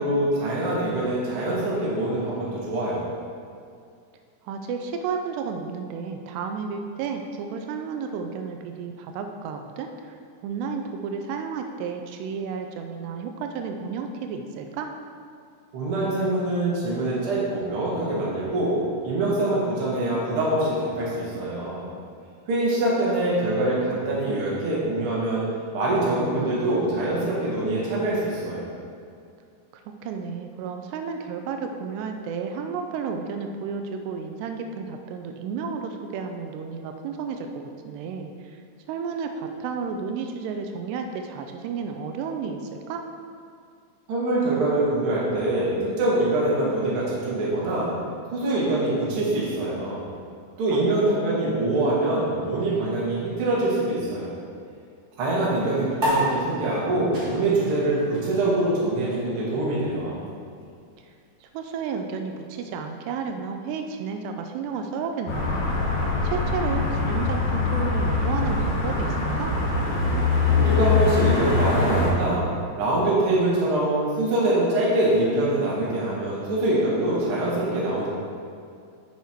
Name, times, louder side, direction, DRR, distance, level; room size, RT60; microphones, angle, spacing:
voice 1, 0.0-3.0 15.7-18.8 19.0-21.8 22.5-25.4 25.7-28.7 44.1-47.9 48.3-50.0 50.6-54.3 55.2-60.2 70.5-72.4 72.7-78.1, right 1 dB, 45° right, -6 dB, 2.0 m, -24 dB
voice 2, 4.4-10.2 10.4-14.9 30.0-38.6 38.9-43.1 50.7-51.5 61.4-65.8 66.2-69.1 69.4-69.6, right 5 dB, 90° right, 5 dB, 2.8 m, -32 dB
sound 1, 56.0-62.8, equal, 30° right, 1.4 m, -33 dB
sound 2, 65.3-72.1, left 4 dB, 70° left, 3.3 m, -23 dB
8.2 x 6.6 x 4.5 m, 2.3 s
omnidirectional pair, 4.7 m